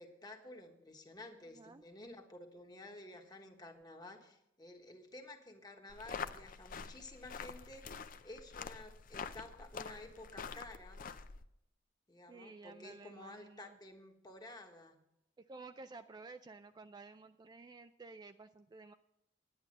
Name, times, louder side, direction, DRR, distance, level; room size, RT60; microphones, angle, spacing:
voice 1, 0.0-11.1 12.1-15.0, left 2 dB, 20° left, 3 dB, 1.4 m, -52 dB
sound 1, 5.9-11.4, left 5 dB, 45° left, 0.5 m, -46 dB
voice 2, 12.3-13.8 15.4-18.9, right 3 dB, 20° right, 9 dB, 0.3 m, -53 dB
10.5 x 9.8 x 6.4 m, 0.81 s
head